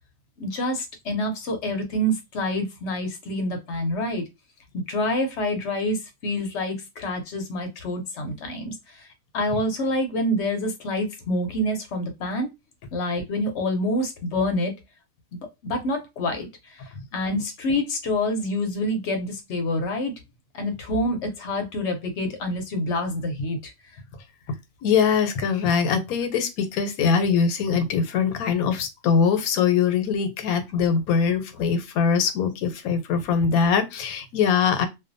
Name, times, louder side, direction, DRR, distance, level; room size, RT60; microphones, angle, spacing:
voice 1, 0.4-4.2 4.7-9.1 9.3-12.5 12.9-14.7 15.3-16.5 17.1-20.1 20.5-23.7, left 1 dB, 60° left, 0.8 m, -27 dB
voice 2, 24.8-34.9, left 6 dB, 85° left, 1.1 m, -22 dB
2.5 x 2.2 x 2.5 m
omnidirectional pair, 1.5 m